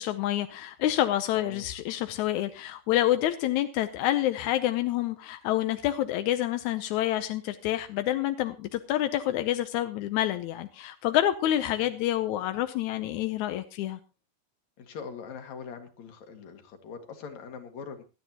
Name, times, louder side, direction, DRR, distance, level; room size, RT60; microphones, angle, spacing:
voice 1, 0.0-14.0, left 13 dB, 75° left, 9 dB, 1.8 m, -28 dB
voice 2, 1.3-1.7 11.8-11.9 14.8-18.0, left 6 dB, 55° left, 6 dB, 2.9 m, -42 dB
19.0 x 13.0 x 3.0 m, 0.30 s
omnidirectional pair, 4.1 m